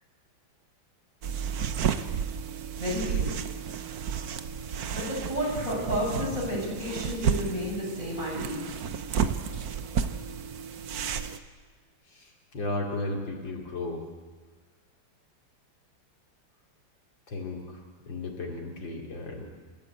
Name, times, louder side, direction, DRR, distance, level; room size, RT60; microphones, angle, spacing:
sound 1, 1.2-11.4, right 7 dB, 55° right, 1.2 m, -32 dB
voice 1, 2.8-3.3 4.9-8.8 9.5-9.6, equal, 40° right, -4 dB, 8.4 m, -31 dB
voice 2, 12.1-14.1 17.3-19.4, left 2 dB, 60° left, 0 dB, 3.7 m, -35 dB
28.5 x 14.5 x 8.2 m, 1.4 s
omnidirectional pair, 2.3 m